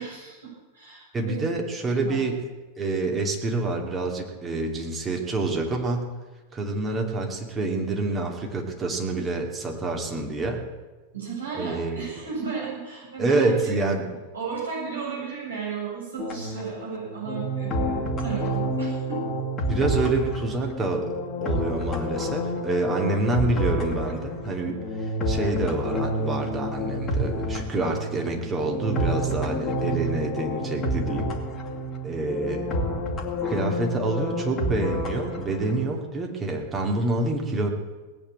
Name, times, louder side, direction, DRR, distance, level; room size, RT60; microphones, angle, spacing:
voice 1, 0.0-1.4 1.9-2.2 3.8-3.9 11.1-13.7 14.3-19.2, right 6 dB, 70° right, -5 dB, 7.6 m, -34 dB
voice 2, 1.1-2.4 2.8-6.1 6.5-10.6 11.5-12.0 13.2-14.2 19.7-21.1 21.4-31.4 32.0-32.7 33.4-37.7, right 2 dB, 20° right, 2 dB, 2.7 m, -27 dB
sound 1, 16.2-35.8, equal, 25° left, 2.4 m, -29 dB
19.0 x 8.7 x 8.7 m, 1.2 s
figure-of-eight pair, 90°, 0 cm